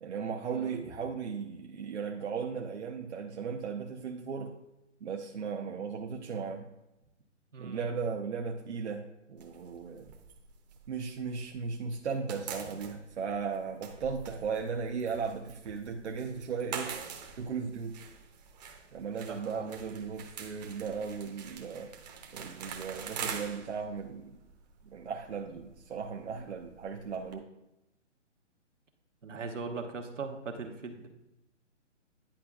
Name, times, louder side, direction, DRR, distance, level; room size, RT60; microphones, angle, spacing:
voice 1, 0.0-4.5 5.0-6.7 7.6-10.1 10.9-16.9 17.4-18.0 18.9-21.9 22.3-24.4 24.8-27.5, right 5 dB, 65° right, 1 dB, 0.8 m, -36 dB
voice 2, 7.5-7.8 19.3-19.7 29.2-31.1, right 4 dB, 80° right, 4 dB, 1.1 m, -39 dB
sound 1, 9.4-11.6 11.9-27.4, right 6 dB, 35° right, 0.8 m, -45 dB
10.0 x 5.0 x 2.4 m, 0.89 s
figure-of-eight pair, 140°, 36 cm